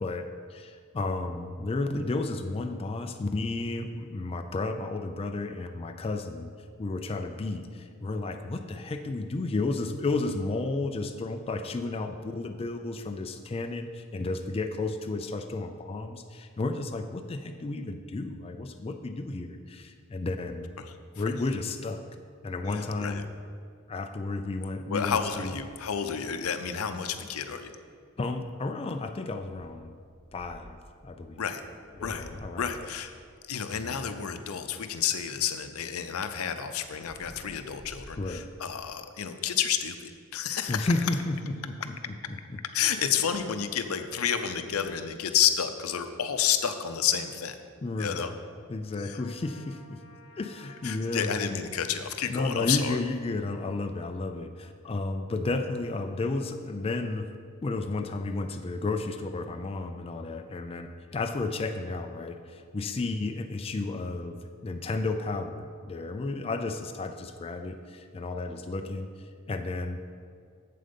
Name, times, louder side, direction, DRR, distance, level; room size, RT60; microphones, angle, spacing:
voice 1, 0.0-6.5 6.8-20.7 21.2-22.0 22.4-23.3 23.9-25.5 28.2-30.0 30.3-30.8 31.0-31.4 32.0-32.9 33.7-34.0 38.2-38.5 40.7-42.6 47.8-48.3 48.7-50.0 50.4-51.6 52.3-57.3 57.6-69.1 69.5-70.0, left 2 dB, 25° left, 5 dB, 0.4 m, -32 dB
voice 2, 22.7-23.2 24.9-27.7 31.4-31.6 32.0-32.3 32.6-33.1 33.5-40.9 42.7-47.6 48.0-48.3 49.0-49.2 50.8-53.0, left 8 dB, 80° left, 8 dB, 0.6 m, -30 dB
sound 1, 26.3-26.6 27.2-27.3 27.5-27.7 28.3-28.6 29.4-30.9 31.6-35.5 35.9-39.0 39.4-39.7 40.0-40.1 40.3-41.1 42.8-42.9 43.2-43.5 43.8-44.8, equal, 35° right, 1.4 m, -51 dB
Trumpet, 49.1-51.7, left 3 dB, 55° left, 1.0 m, -54 dB
7.7 x 7.6 x 5.2 m, 2.2 s
head